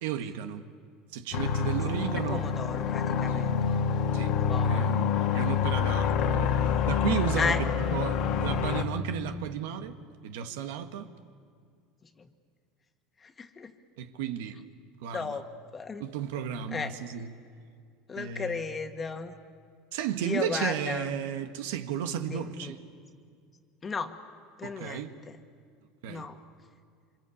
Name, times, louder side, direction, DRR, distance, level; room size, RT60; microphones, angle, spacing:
voice 1, 0.0-0.6 1.1-2.4 3.3-3.5 4.1-4.4 4.6-7.6 7.9-10.0 10.2-11.1 14.0-14.6 15.0-15.4 16.0-17.3 18.2-18.6 19.9-22.8 24.6-25.1 26.0-26.3, right 9 dB, 80° right, 1.5 m, -33 dB
sound 1, 1.3-8.8, left 7 dB, 55° left, 1.7 m, -27 dB
voice 2, 2.1-3.6 4.5-5.0 7.4-8.0 12.0-12.3 13.2-13.7 15.1-16.1 16.7-17.0 18.1-19.3 20.2-21.1 22.3-22.8 23.8-24.2 24.6-25.4 26.1-26.4, left 5 dB, 20° left, 1.7 m, -35 dB
27.0 x 25.5 x 8.6 m
supercardioid pair, 130°, 0 cm